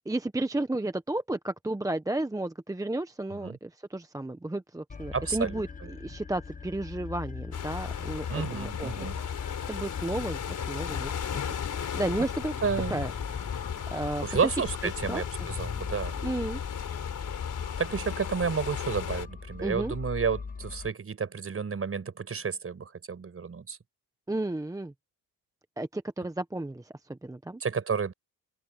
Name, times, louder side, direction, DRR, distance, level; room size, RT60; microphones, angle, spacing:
voice 1, 0.0-8.9 9.7-11.4 11.7-12.6 12.9-13.5 13.9-14.5 15.1-15.5 16.2-16.6 19.6-19.9 24.3-24.9 25.8-27.6, right 2 dB, 10° right, 1.0 m, -33 dB
sound 1, 4.9-20.9, left 5 dB, 20° left, 1.4 m, -42 dB
voice 2, 5.1-5.6 8.3-9.2 12.6-13.0 14.2-16.1 17.8-23.8 27.6-28.1, right 5 dB, 35° right, 5.5 m, -31 dB
sound 2, 7.5-19.3, left 8 dB, 50° left, 4.2 m, -35 dB
open air
cardioid pair, 90°, 38 cm